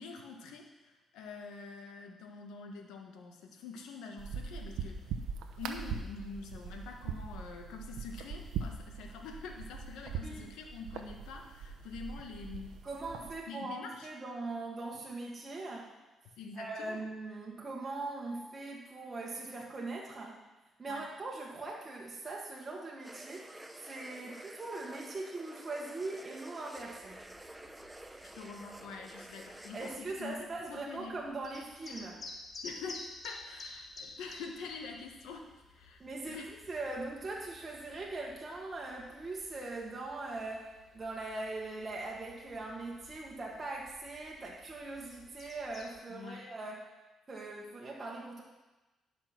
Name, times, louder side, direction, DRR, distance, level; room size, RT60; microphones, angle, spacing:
voice 1, 0.0-5.1 5.6-12.8 13.5-14.1 16.4-17.0 20.9-21.0 28.3-31.2 32.6-35.5 35.7-36.0 36.3-36.8 46.1-46.5, left 4 dB, 90° left, 3 dB, 1.4 m, -46 dB
sound 1, 4.2-13.4, right 6 dB, 85° right, 0.8 m, -41 dB
voice 2, 12.8-15.9 16.6-20.4 20.8-23.5 23.8-27.2 29.7-32.2 36.0-36.4 36.7-46.8 47.3-48.4, right 2 dB, 30° right, -3 dB, 1.7 m, -41 dB
sound 2, 23.0-30.0, right 1 dB, 10° right, 0.8 m, -50 dB
sound 3, 26.8-46.0, left 2 dB, 45° left, 1.8 m, -53 dB
11.0 x 6.0 x 5.9 m, 1.1 s
cardioid pair, 90°, 0 cm